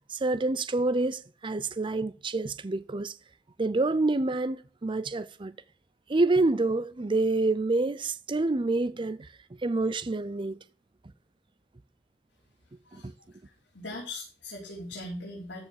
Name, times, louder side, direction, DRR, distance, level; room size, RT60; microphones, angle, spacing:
voice 1, 0.1-3.1 3.6-5.5 6.1-9.3 9.6-10.6 12.9-13.1, right 2 dB, 30° right, 0.5 m, -27 dB
voice 2, 13.7-15.7, left 2 dB, 75° left, 4.3 m, -40 dB
14.0 x 5.7 x 6.5 m
head